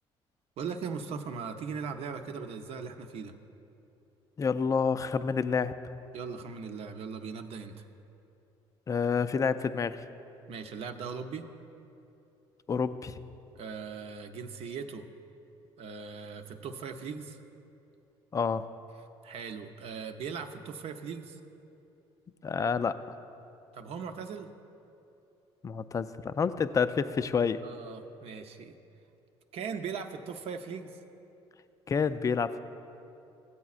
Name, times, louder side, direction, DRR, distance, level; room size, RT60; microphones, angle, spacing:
voice 1, 0.6-3.4 6.1-7.8 10.5-11.5 13.5-15.1 15.8-17.4 19.2-21.4 23.7-24.5 27.6-28.8 29.5-31.0, right 5 dB, 60° right, 6 dB, 0.7 m, -39 dB
voice 2, 4.4-5.7 8.9-10.0 12.7-13.2 18.3-18.6 22.4-23.0 25.6-27.6 31.9-32.6, left 5 dB, 30° left, 12 dB, 0.4 m, -28 dB
15.5 x 8.3 x 2.4 m, 2.8 s
supercardioid pair, 80°, 11 cm